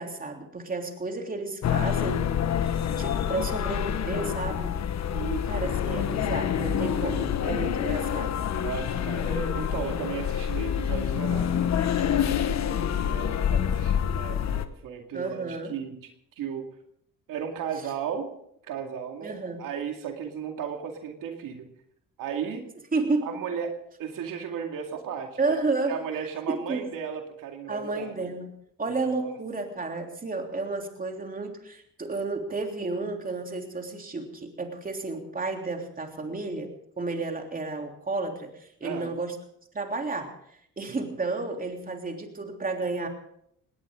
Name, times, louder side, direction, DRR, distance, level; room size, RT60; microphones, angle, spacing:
voice 1, 0.0-2.3 3.0-4.8 5.4-8.4 15.1-15.8 19.2-19.6 22.9-23.3 25.4-26.0 26.5-26.9 27.7-28.5 28.8-39.4 39.7-40.3 40.8-43.1, right 3 dB, 25° right, 3 dB, 3.3 m, -31 dB
sound 1, 1.6-14.7, left 9 dB, 55° left, 1.3 m, -27 dB
voice 2, 5.1-5.5 8.6-16.1 16.4-16.7 17.3-18.3 18.6-21.7 22.2-22.7 23.2-28.1 29.1-29.3 38.8-39.1 40.8-41.0, right 7 dB, 75° right, 3 dB, 2.3 m, -35 dB
19.5 x 19.0 x 3.8 m, 0.71 s
cardioid pair, 90°, 33 cm